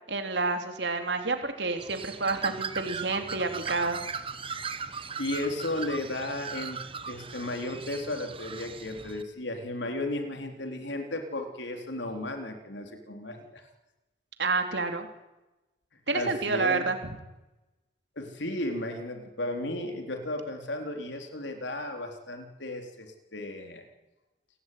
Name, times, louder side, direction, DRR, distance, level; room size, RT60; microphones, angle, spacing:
voice 1, 0.1-4.0 14.4-15.1 16.1-17.0, right 3 dB, 70° right, 6 dB, 3.5 m, -29 dB
Bird, 1.8-9.2, right 5 dB, 30° right, 1.4 m, -38 dB
voice 2, 4.9-6.8 7.1-13.6 16.1-16.9 18.2-23.8, left 1 dB, 80° left, 4 dB, 4.0 m, -34 dB
29.0 x 17.0 x 9.5 m, 1.0 s
head